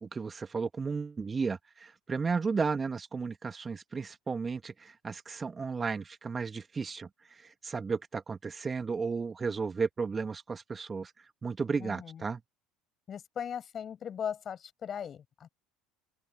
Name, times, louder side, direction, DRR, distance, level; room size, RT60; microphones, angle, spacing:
voice 1, 0.0-12.4, right 5 dB, 25° right, 2.2 m, -34 dB
voice 2, 11.8-12.2 13.1-15.5, left 8 dB, 40° left, 6.9 m, -38 dB
open air
hypercardioid pair, 70°, 0 cm